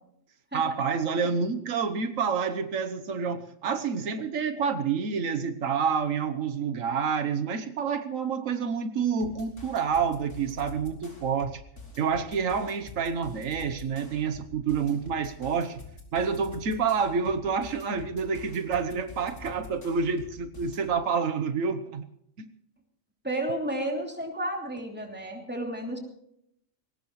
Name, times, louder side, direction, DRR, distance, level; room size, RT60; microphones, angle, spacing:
voice 1, 0.5-11.6 12.0-15.8 16.1-22.1 22.4-22.5, right 6 dB, 85° right, 9 dB, 1.4 m, -28 dB
sound 1, 9.2-20.9, left 3 dB, 70° left, 3.6 m, -46 dB
voice 2, 23.2-26.0, right 1 dB, 10° right, 1 dB, 3.0 m, -32 dB
21.0 x 18.0 x 3.2 m, 0.74 s
omnidirectional pair, 1.3 m